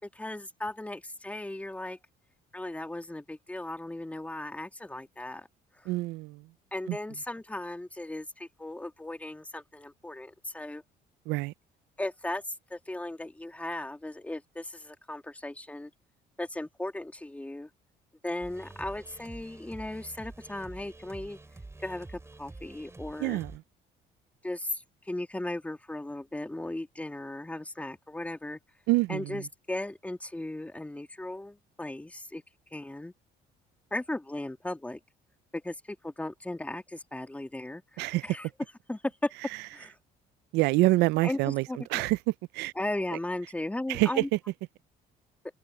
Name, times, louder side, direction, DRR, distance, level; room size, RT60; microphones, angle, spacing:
voice 1, 0.0-2.0 2.5-5.5 5.7-5.9 6.7-10.8 12.0-15.9 16.4-17.7 18.2-21.4 21.8-23.4 24.4-28.6 29.1-32.4 32.7-33.1 33.9-35.0 35.5-38.5 38.9-39.3 39.7-40.0 41.2-42.0 42.7-44.3, left 1 dB, 10° left, 2.5 m, -37 dB
voice 2, 5.9-6.4 6.9-7.0 11.3-11.5 23.2-23.5 28.9-29.4 38.0-38.2 40.5-41.6 41.9-42.2 42.5-42.7 43.9-44.2, right 20 dB, 90° right, 0.4 m, -26 dB
sound 1, 18.4-23.6, right 2 dB, 15° right, 4.6 m, -47 dB
cardioid pair, 110°, 17 cm